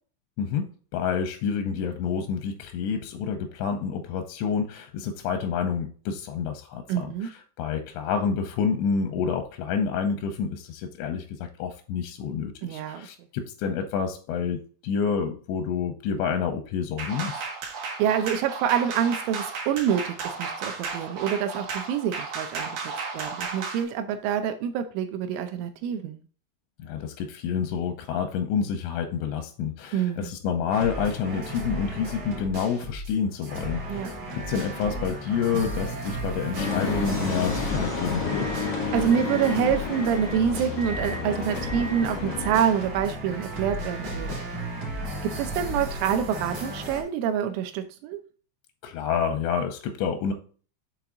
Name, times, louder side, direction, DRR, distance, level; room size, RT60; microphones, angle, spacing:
voice 1, 0.9-7.3 7.6-17.4 26.8-38.5 48.8-50.3, left 6 dB, 85° left, 6 dB, 2.7 m, -28 dB
voice 2, 6.9-7.3 12.6-13.1 18.0-26.2 29.9-30.3 33.9-34.1 38.9-44.5 45.2-48.2, right 8 dB, 85° right, 8 dB, 3.1 m, -26 dB
sound 1, 17.0-23.8, right 4 dB, 60° right, 2.2 m, -34 dB
Power Rock Loop, 30.7-33.1 33.4-47.0, right 1 dB, 45° right, 2.9 m, -34 dB
sound 2, 36.6-42.5, left 5 dB, 60° left, 1.6 m, -31 dB
7.0 x 4.6 x 3.7 m, 0.40 s
omnidirectional pair, 5.7 m